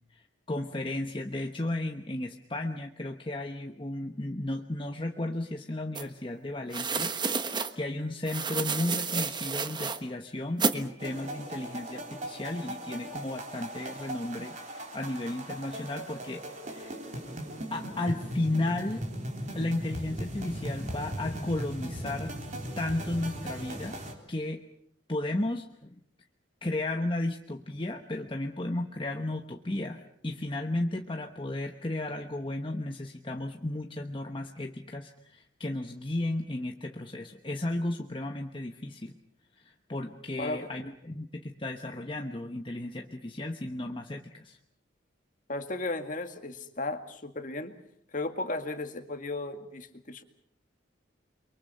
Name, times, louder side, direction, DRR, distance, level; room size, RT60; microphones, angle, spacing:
voice 1, 0.1-7.1 7.7-17.0 17.7-19.0 19.5-22.3 22.8-24.0 24.3-24.6 25.1-26.0 26.6-39.1 39.6-44.6, left 1 dB, 25° left, 4 dB, 1.1 m, -34 dB
sound 1, 5.9-6.0 6.7-7.7 8.3-10.0 10.6-10.8, right 5 dB, 25° right, 1.2 m, -30 dB
sound 2, 11.0-24.1, right 1 dB, 40° right, 3.9 m, -38 dB
voice 2, 40.4-40.7 45.5-47.8 48.1-50.2, left 2 dB, 45° left, 7 dB, 2.1 m, -35 dB
29.5 x 23.5 x 5.6 m, 0.69 s
head